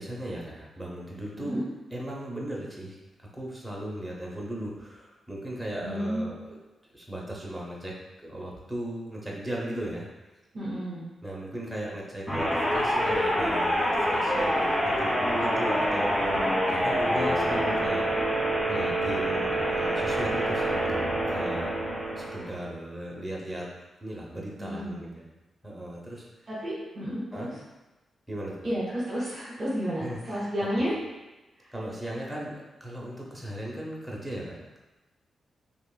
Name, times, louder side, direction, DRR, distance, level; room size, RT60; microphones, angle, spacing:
voice 1, 0.0-1.7 1.9-6.6 6.9-10.3 11.2-18.1 18.7-21.8 22.2-23.7 24.0-25.2 25.6-26.5 27.3-27.5 28.3-28.7 30.0-30.8 31.7-34.8, right 1 dB, 5° right, -4 dB, 0.8 m, -37 dB
voice 2, 5.8-6.3 10.5-11.0 24.6-25.0 26.5-27.5 28.6-30.9 31.6-31.7, equal, 35° right, -9 dB, 1.2 m, -31 dB
sound 1, 12.3-22.6, equal, 30° left, 1.4 m, -26 dB
5.3 x 2.5 x 2.2 m, 1.1 s
wide cardioid pair, 135°, 0 cm